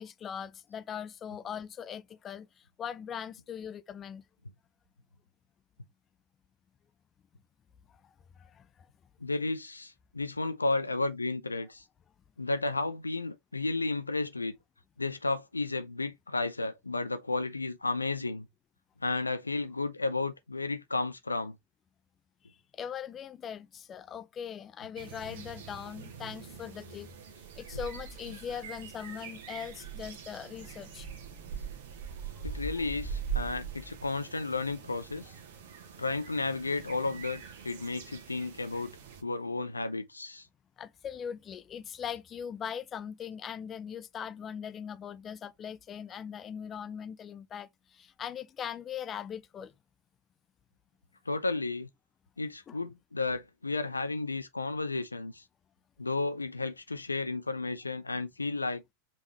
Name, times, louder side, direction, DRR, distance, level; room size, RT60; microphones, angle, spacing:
voice 1, 0.0-4.2 8.0-8.1 8.4-8.9 22.5-27.1 27.6-31.1 32.8-32.9 40.8-49.7 52.7-52.8, left 8 dB, 25° left, 0.5 m, -40 dB
voice 2, 9.2-11.8 12.4-14.6 15.0-18.5 19.0-21.6 25.3-25.4 32.4-35.3 36.0-38.9 39.2-40.5 51.3-51.9 52.4-55.4 56.0-58.8, left 3 dB, 80° left, 0.4 m, -33 dB
sound 1, 25.0-39.2, right 6 dB, 55° right, 1.1 m, -42 dB
5.2 x 3.5 x 2.7 m
figure-of-eight pair, 90°, 0 cm